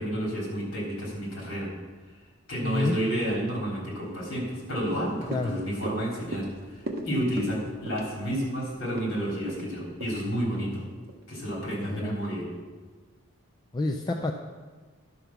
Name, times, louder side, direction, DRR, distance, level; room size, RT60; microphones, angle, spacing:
voice 1, 0.0-1.7 2.5-10.8 11.3-12.5, equal, 65° left, -3 dB, 3.4 m, -30 dB
voice 2, 2.6-3.0 5.3-5.6 11.7-12.2 13.7-14.3, left 2 dB, 20° left, 2 dB, 0.4 m, -28 dB
sound 1, 4.8-11.2 11.6-11.7, right 1 dB, 45° right, 1.0 m, -40 dB
11.0 x 5.2 x 5.9 m, 1.4 s
head